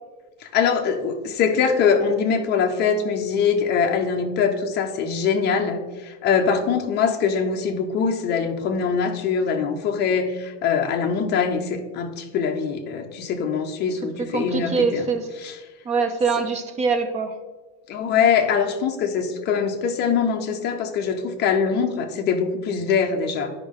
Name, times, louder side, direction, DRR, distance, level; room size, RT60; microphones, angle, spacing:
voice 1, 0.4-15.1 15.4-15.5 17.9-23.5, left 6 dB, 30° left, 3 dB, 0.7 m, -23 dB
voice 2, 14.2-15.3 15.8-17.4, right 4 dB, 20° right, 7 dB, 0.4 m, -23 dB
11.0 x 5.2 x 3.6 m, 1.3 s
cardioid pair, 180°, 36 cm